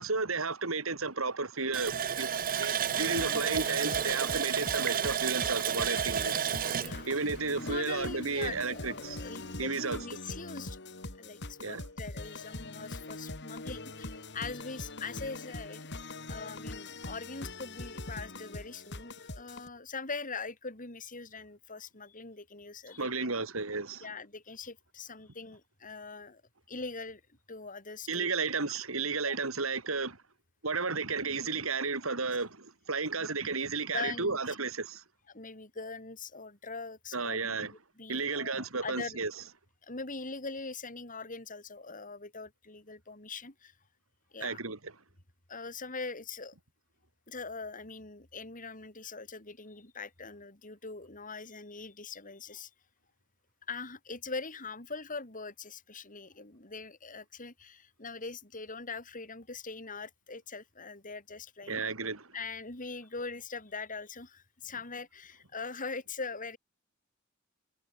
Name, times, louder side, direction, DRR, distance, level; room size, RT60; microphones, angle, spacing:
voice 1, 0.0-6.4 7.1-9.2 9.6-10.0 11.6-11.9 23.0-24.1 28.1-30.2 30.6-35.0 37.1-37.7 38.1-39.3 44.4-44.9 61.7-62.3, right 4 dB, 80° right, 3.3 m, -33 dB
Water tap faucet, 1.7-8.2 8.6-8.7 9.1-9.3, right 8 dB, 45° right, 0.6 m, -31 dB
sound 1, 2.9-19.7, left 2 dB, 55° left, 3.7 m, -43 dB
voice 2, 7.6-10.8 11.2-15.9 16.3-23.3 24.0-26.4 26.7-27.2 27.5-28.3 29.3-29.4 33.2-33.5 33.9-34.4 35.3-37.7 38.0-39.2 39.8-43.7 44.3-44.6 45.5-46.5 47.3-52.7 53.7-61.8 62.3-66.6, left 4 dB, 40° left, 5.0 m, -42 dB
head